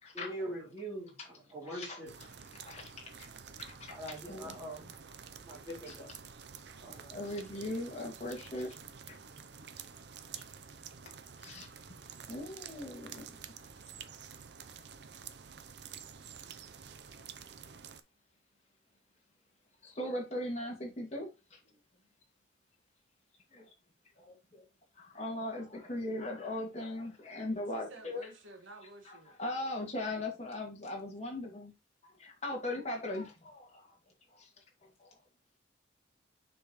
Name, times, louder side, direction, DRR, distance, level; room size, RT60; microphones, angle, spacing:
voice 1, 0.1-2.1 3.9-4.9 5.4-6.1 6.8-7.2, right 1 dB, 15° right, 3.7 m, -43 dB
voice 2, 1.7-2.0 2.6-3.3 3.6-4.0 4.3-4.6 5.9-6.0 7.1-8.8 9.1-9.2 11.4-11.7 12.3-13.4 19.8-21.7 23.5-23.7 24.2-24.6 24.9-28.3 29.0-31.7 32.2-34.0 34.3-35.2, left 1 dB, 35° left, 2.2 m, -39 dB
sound 1, 2.1-18.0, right 7 dB, 60° right, 0.6 m, -49 dB
voice 3, 27.7-29.4, right 2 dB, 80° right, 1.7 m, -52 dB
6.7 x 5.4 x 3.1 m
head